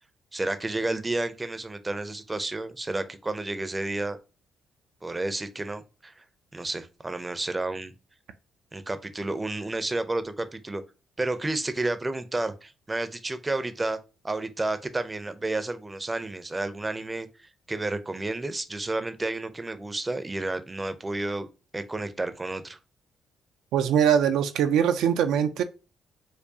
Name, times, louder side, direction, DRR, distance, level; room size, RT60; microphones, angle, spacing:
voice 1, 0.3-4.2 5.0-6.1 6.5-7.9 8.7-10.8 11.2-14.0 14.2-21.5 21.7-22.8, right 2 dB, 20° right, 0.5 m, -31 dB
voice 2, 23.7-25.6, right 8 dB, 85° right, 0.3 m, -22 dB
4.5 x 2.3 x 2.7 m
cardioid pair, 90°, 0 cm